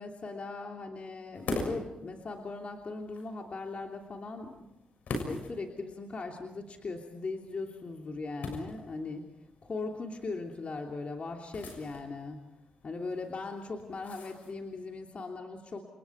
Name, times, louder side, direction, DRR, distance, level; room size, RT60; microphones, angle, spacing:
voice 1, 0.0-4.7 5.2-9.2 9.6-12.4 12.8-15.8, left 3 dB, 50° left, 2 dB, 3.1 m, -39 dB
sound 1, 1.3-14.9, left 2 dB, 70° left, 6.7 m, -44 dB
28.5 x 28.5 x 4.8 m, 0.89 s
supercardioid pair, 45°, 3 cm